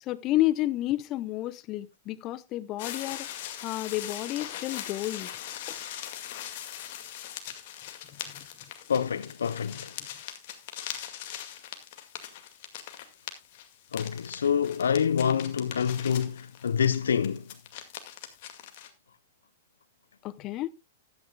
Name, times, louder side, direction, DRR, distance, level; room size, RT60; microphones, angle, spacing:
voice 1, 0.0-5.3 8.1-8.5 20.2-20.7, left 15 dB, 35° left, 0.7 m, -31 dB
sound 1, 2.8-18.9, left 11 dB, 55° left, 2.1 m, -41 dB
voice 2, 8.9-9.9 13.9-17.4, left 7 dB, 75° left, 0.5 m, -27 dB
15.0 x 11.5 x 2.3 m
figure-of-eight pair, 105°, 0 cm